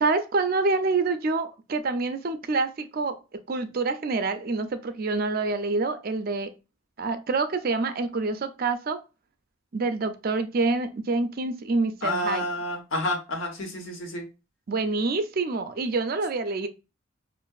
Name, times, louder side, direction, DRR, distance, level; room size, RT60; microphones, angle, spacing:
voice 1, 0.0-3.2 3.5-6.5 7.0-9.0 9.7-12.4 14.7-16.7, right 3 dB, 45° right, 0.4 m, -26 dB
voice 2, 12.0-14.3, left 1 dB, 80° left, 1.1 m, -29 dB
5.4 x 2.5 x 2.3 m
head